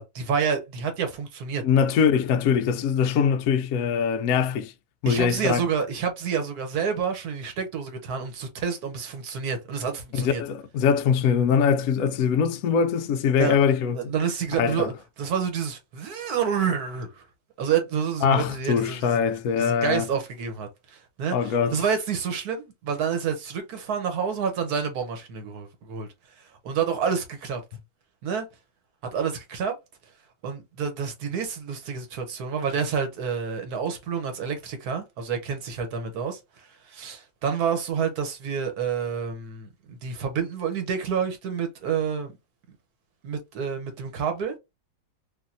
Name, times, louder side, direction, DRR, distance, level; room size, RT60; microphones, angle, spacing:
voice 1, 0.0-1.6 5.1-10.4 13.4-13.6 13.9-17.2 17.6-19.2 19.6-26.1 26.4-27.6 28.2-28.5 29.1-29.8 30.4-42.3 43.2-44.6, right 6 dB, 60° right, 1.2 m, -28 dB
voice 2, 1.6-4.7 5.0-5.6 10.2-14.1 14.6-14.9 18.2-20.1 21.3-21.8, left 7 dB, 80° left, 0.8 m, -22 dB
3.4 x 2.6 x 2.5 m
omnidirectional pair, 2.1 m